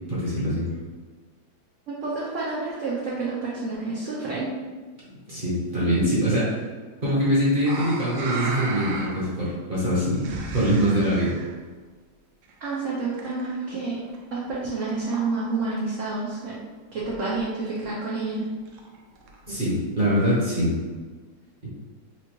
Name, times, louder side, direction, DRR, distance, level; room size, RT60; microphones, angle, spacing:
voice 1, 0.1-0.6 5.3-6.6 7.0-11.3 19.5-20.8 21.6-21.7, equal, 35° right, -8 dB, 0.9 m, -23 dB
voice 2, 1.9-4.5 12.6-14.0 14.3-16.6 16.9-18.5, right 3 dB, 70° right, -6 dB, 0.7 m, -29 dB
sound 1, 7.6-9.4 9.7-11.5 12.4-13.7 14.0-14.5 14.9-15.7 16.0-16.1 16.3-16.4 16.7-16.8 17.0-17.4 17.8-17.9 18.3-19.6 20.2-20.3, right 2 dB, 85° right, 1.4 m, -36 dB
4.8 x 2.5 x 3.0 m, 1.4 s
omnidirectional pair, 2.1 m